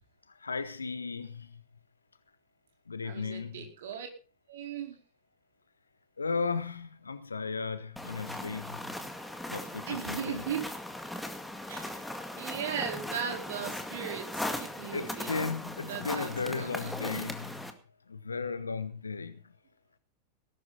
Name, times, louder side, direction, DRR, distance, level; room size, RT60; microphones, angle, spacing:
voice 1, 0.4-1.6 2.9-3.7 6.2-8.9 9.5-10.4 14.9-17.7 18.1-19.4, left 4 dB, 75° left, 1.5 m, -35 dB
voice 2, 3.0-4.1 4.5-5.0 9.9-10.7 11.7-15.5 15.9-16.9, right 8 dB, 60° right, 4.6 m, -38 dB
sound 1, 8.0-17.7, left 1 dB, 5° left, 2.0 m, -38 dB
18.5 x 12.0 x 4.1 m
figure-of-eight pair, 90°, 0 cm